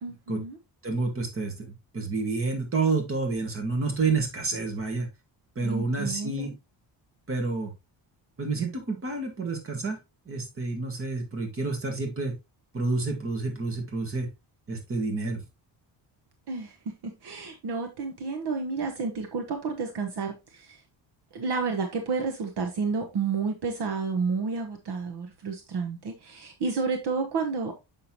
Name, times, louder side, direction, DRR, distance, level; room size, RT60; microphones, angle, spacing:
voice 1, 0.0-0.6 5.6-6.5 16.5-16.8 17.0-20.8 21.3-27.7, right 4 dB, 60° right, 1.1 m, -31 dB
voice 2, 0.8-5.1 5.5-6.5 7.3-7.7 8.4-10.0 10.2-12.3 12.7-14.3 14.7-15.4, right 3 dB, 30° right, 1.7 m, -29 dB
6.7 x 5.7 x 2.9 m
cardioid pair, 165°, 46 cm